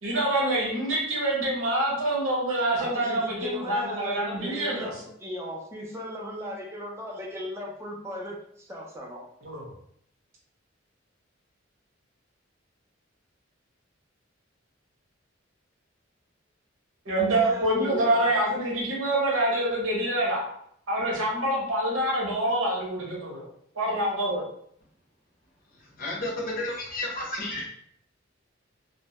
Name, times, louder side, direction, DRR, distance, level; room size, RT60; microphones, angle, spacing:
voice 1, 0.0-4.9 9.4-9.6 17.0-20.5 20.9-23.5 23.7-24.4, right 1 dB, 85° right, -3 dB, 0.9 m, -26 dB
voice 2, 2.8-9.2 17.2-18.4, equal, 15° right, -2 dB, 0.4 m, -37 dB
voice 3, 25.8-27.7, left 2 dB, 45° left, -2 dB, 0.6 m, -32 dB
2.1 x 2.1 x 2.8 m, 0.68 s
head